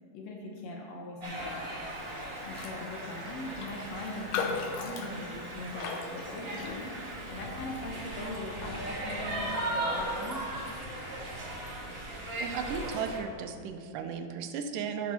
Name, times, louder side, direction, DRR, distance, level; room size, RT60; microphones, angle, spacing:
voice 1, 0.1-1.7 2.5-6.9 7.3-10.7, left 2 dB, 65° left, -1 dB, 1.9 m, -41 dB
sound 1, 1.2-13.2, right 1 dB, 50° right, 0.7 m, -37 dB
Raindrop, 2.5-2.8 3.1-3.2 3.6-7.1 7.6-7.8, left 5 dB, 85° left, 2.4 m, -37 dB
voice 2, 12.4-15.1, right 6 dB, 85° right, 7 dB, 2.3 m, -35 dB
10.5 x 5.3 x 5.7 m, 2.1 s
omnidirectional pair, 3.7 m